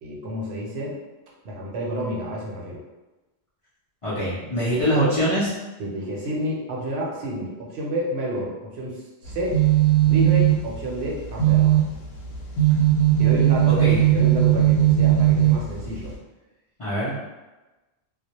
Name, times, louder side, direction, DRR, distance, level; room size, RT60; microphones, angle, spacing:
voice 1, 0.0-1.0 1.4-2.8 5.8-9.6 10.0-11.8 13.2-16.1, equal, 80° right, -3 dB, 0.9 m, -30 dB
voice 2, 4.0-5.5 13.7-14.0 16.8-17.1, equal, 40° left, -11 dB, 0.5 m, -23 dB
sound 1, 9.3-16.2, right 11 dB, 80° left, 0.8 m, -19 dB
2.1 x 2.0 x 2.8 m, 1.1 s
omnidirectional pair, 1.1 m